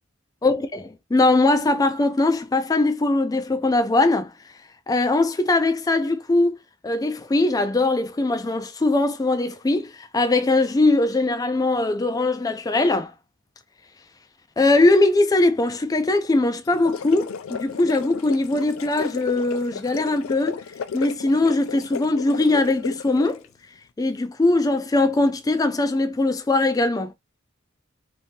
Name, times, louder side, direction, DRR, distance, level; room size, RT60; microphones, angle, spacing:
voice 1, 0.4-0.8 1.1-4.3 4.9-6.6 6.8-13.1 14.6-20.6 20.9-23.4 24.0-27.1, left 2 dB, 20° left, 0.4 m, -21 dB
sound 1, 16.6-23.4, left 6 dB, 80° left, 0.4 m, -34 dB
2.7 x 2.6 x 3.6 m
head